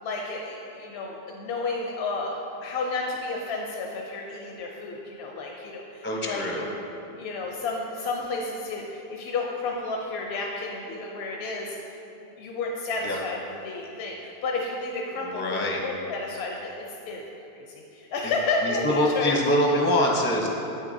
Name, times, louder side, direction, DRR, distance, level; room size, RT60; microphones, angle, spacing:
voice 1, 0.0-6.7 7.2-11.8 12.4-13.4 13.6-17.2 17.5-19.3, left 3 dB, 85° left, -1 dB, 0.9 m, -31 dB
voice 2, 6.0-6.6 13.0-13.2 15.2-15.8 18.2-18.3 18.6-20.5, left 1 dB, 15° left, -1 dB, 0.6 m, -24 dB
8.3 x 6.4 x 2.6 m, 2.8 s
omnidirectional pair, 1.0 m